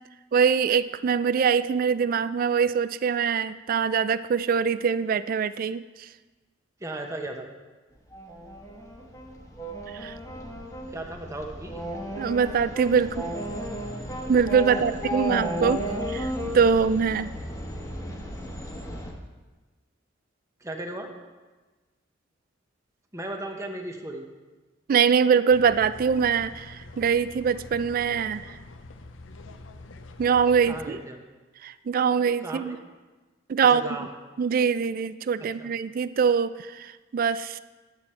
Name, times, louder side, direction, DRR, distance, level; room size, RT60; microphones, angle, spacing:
voice 1, 0.3-5.8 9.9-10.1 12.2-13.3 14.3-15.8 16.1-17.3 24.9-28.6 30.2-31.0 31.6-32.8 33.5-33.8 34.4-37.6, right 6 dB, 50° right, 15 dB, 0.3 m, -23 dB
voice 2, 6.8-7.5 10.9-11.8 14.7-14.8 15.2-15.3 20.6-21.1 23.1-24.3 30.6-31.2 32.4-32.8 33.6-34.1 35.4-35.7, right 1 dB, 15° right, 2 dB, 0.9 m, -36 dB
sound 1, 8.1-19.1, right 1 dB, 15° left, 1.1 m, -34 dB
sound 2, 25.5-30.9, left 2 dB, 85° left, 0.6 m, -45 dB
10.5 x 7.8 x 4.4 m, 1.3 s
head